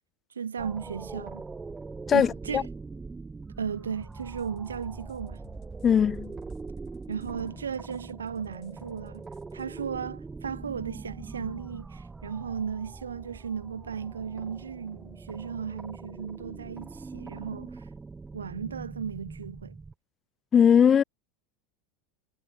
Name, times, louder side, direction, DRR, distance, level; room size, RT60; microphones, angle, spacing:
voice 1, 0.3-1.4 2.1-2.7 3.6-5.4 7.1-17.8 18.3-19.8, right 7 dB, 85° right, 1.1 m, -35 dB
sound 1, 0.6-19.9, right 4 dB, 15° right, 1.0 m, -42 dB
voice 2, 2.1-2.6 5.8-6.4 20.5-21.0, left 8 dB, 30° left, 0.4 m, -20 dB
sound 2, 4.0-9.6, left 16 dB, 50° left, 3.2 m, -60 dB
figure-of-eight pair, 80°, 0 cm